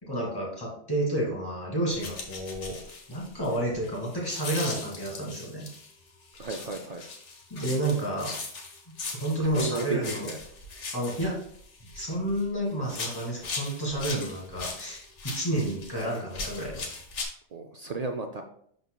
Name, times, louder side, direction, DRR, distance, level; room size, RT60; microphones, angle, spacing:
voice 1, 0.0-2.8 3.1-5.7 7.5-8.3 8.9-10.3 10.9-11.4 11.9-16.8, right 1 dB, 20° left, -4 dB, 2.1 m, -30 dB
sound 1, 1.9-5.9 6.4-12.5 12.8-17.3, left 3 dB, 80° left, 1.4 m, -39 dB
voice 2, 6.4-7.0 9.4-10.4 17.5-18.4, right 3 dB, 60° right, 5 dB, 0.4 m, -33 dB
11.5 x 3.9 x 2.2 m, 0.64 s
omnidirectional pair, 1.2 m